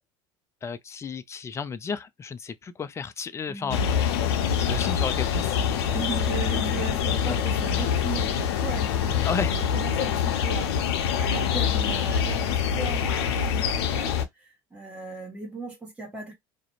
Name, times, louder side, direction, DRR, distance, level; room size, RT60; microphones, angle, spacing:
voice 1, 0.6-5.9 6.5-6.6 7.1-7.4 9.2-9.6, left 6 dB, 20° left, 0.4 m, -34 dB
voice 2, 3.5-3.9 5.9-9.3 9.7-16.3, right 4 dB, 10° right, 1.0 m, -37 dB
sound 1, 3.7-14.3, left 8 dB, 85° left, 0.5 m, -25 dB
2.4 x 2.0 x 2.9 m
supercardioid pair, 95°, 13 cm